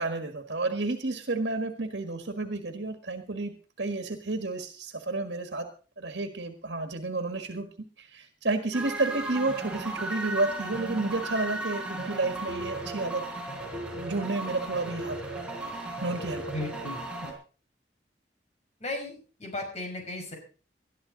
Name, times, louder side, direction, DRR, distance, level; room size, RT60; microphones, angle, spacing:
voice 1, 0.0-5.7 6.0-7.7 8.0-13.2 13.9-15.4 15.7-16.4 17.2-17.3, right 3 dB, 80° right, 6 dB, 1.6 m, -31 dB
sound 1, 8.7-17.3, right 2 dB, 5° right, 4.3 m, -35 dB
voice 2, 16.5-17.0 18.8-20.4, left 2 dB, 40° left, 2 dB, 5.7 m, -35 dB
20.5 x 12.5 x 4.0 m, 0.38 s
head